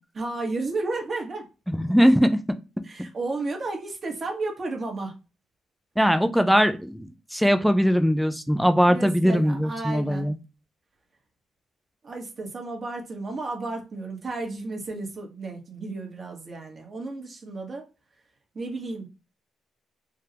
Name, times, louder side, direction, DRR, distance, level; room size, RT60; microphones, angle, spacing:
voice 1, 0.1-1.5 2.8-5.2 8.9-10.3 12.0-17.8 18.5-19.1, right 3 dB, 40° right, 1 dB, 1.2 m, -33 dB
voice 2, 1.7-2.4 6.0-10.3, equal, ahead, 8 dB, 0.5 m, -21 dB
3.5 x 2.3 x 2.8 m, 0.29 s
cardioid pair, 90°, 0 cm